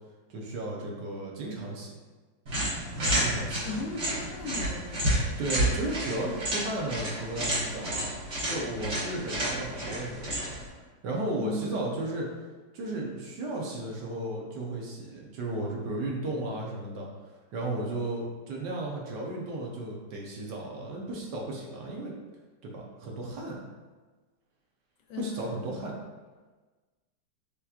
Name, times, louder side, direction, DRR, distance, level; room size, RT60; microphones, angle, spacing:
voice 1, 0.3-1.9 3.0-3.6 5.4-8.1 8.5-10.5 11.0-12.3 12.7-17.1 17.5-22.1 22.6-23.6 25.2-25.9, right 2 dB, 65° right, -2 dB, 1.4 m, -34 dB
sound 1, 2.5-10.7, right 1 dB, 40° right, 1.4 m, -30 dB
voice 2, 3.6-5.2 11.4-11.8 25.1-25.8, left 3 dB, 85° left, 1 dB, 1.4 m, -37 dB
6.8 x 3.1 x 2.4 m, 1.3 s
omnidirectional pair, 2.0 m